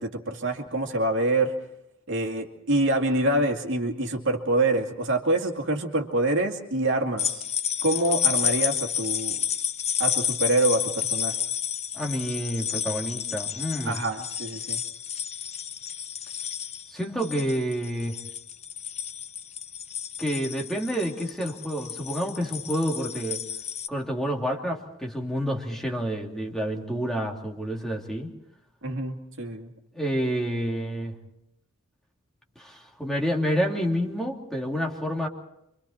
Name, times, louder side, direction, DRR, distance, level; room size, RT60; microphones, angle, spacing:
voice 1, 0.0-1.6 2.1-7.4 7.8-9.4 10.0-11.4 13.8-14.8 28.8-29.7, right 2 dB, 60° right, 3 dB, 2.3 m, -26 dB
sound 1, 7.2-23.9, left 9 dB, 30° left, 0.9 m, -31 dB
voice 2, 11.9-14.0 16.9-18.2 20.2-23.4 23.9-28.3 29.9-31.1 32.6-35.3, equal, ahead, -1 dB, 2.9 m, -29 dB
27.5 x 25.0 x 4.4 m, 0.82 s
head